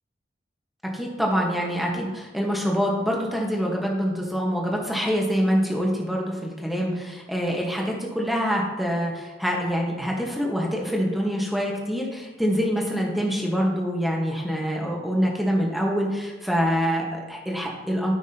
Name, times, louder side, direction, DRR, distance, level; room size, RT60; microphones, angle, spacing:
voice 1, 0.9-18.1, equal, ahead, -2 dB, 1.3 m, -25 dB
13.0 x 6.0 x 2.9 m, 1.2 s
head